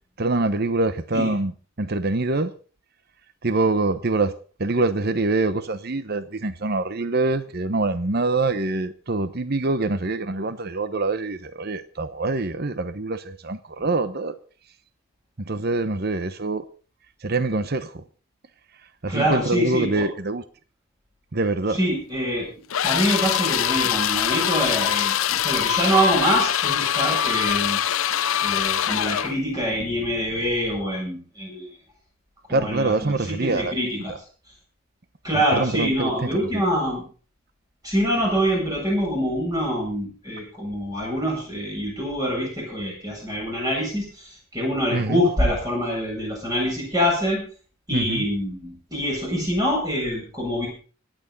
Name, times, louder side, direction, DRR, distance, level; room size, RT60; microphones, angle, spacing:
voice 1, 0.2-1.5 1.8-2.5 3.4-4.3 4.6-14.3 15.4-16.6 17.2-18.0 19.0-20.4 21.3-21.8 32.5-33.7 35.3-36.6 44.9-45.3 47.9-48.3, right 2 dB, 50° right, 0.9 m, -25 dB
voice 2, 19.1-20.1 21.7-22.5 22.8-27.8 28.4-31.7 32.5-33.1 33.4-34.1 35.2-37.0 37.8-47.4 47.9-50.7, equal, 20° right, 7.6 m, -25 dB
sound 1, 22.7-29.4, left 10 dB, 75° left, 0.6 m, -23 dB
26.0 x 9.0 x 4.1 m
head